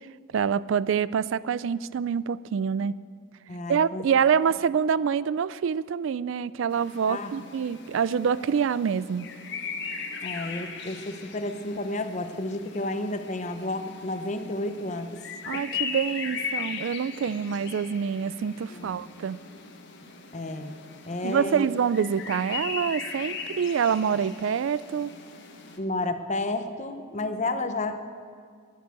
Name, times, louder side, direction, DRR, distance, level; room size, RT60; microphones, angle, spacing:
voice 1, 0.3-3.0 3.7-9.3 15.5-19.4 21.2-25.1, right 7 dB, 65° right, 19 dB, 0.3 m, -26 dB
voice 2, 3.5-4.0 7.1-7.3 10.2-15.2 15.5-15.6 18.7-18.9 20.3-20.8 21.1-21.7 25.8-28.0, left 2 dB, 35° left, 9 dB, 0.8 m, -31 dB
sound 1, 6.7-25.8, left 5 dB, 55° left, 1.3 m, -38 dB
11.5 x 11.0 x 8.2 m, 2.1 s
head